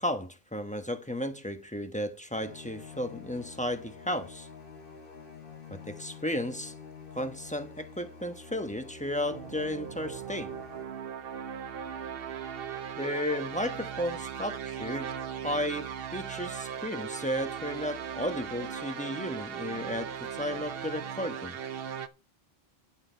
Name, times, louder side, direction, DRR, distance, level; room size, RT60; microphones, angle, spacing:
voice 1, 0.0-4.5 5.7-6.7 7.1-10.5 13.0-15.2 15.4-21.6, equal, 5° left, 1.0 m, -34 dB
sound 1, 2.3-10.8, left 5 dB, 60° left, 1.6 m, -48 dB
sound 2, 9.3-22.1, right 8 dB, 70° right, 0.9 m, -38 dB
10.5 x 8.0 x 4.5 m
omnidirectional pair, 1.0 m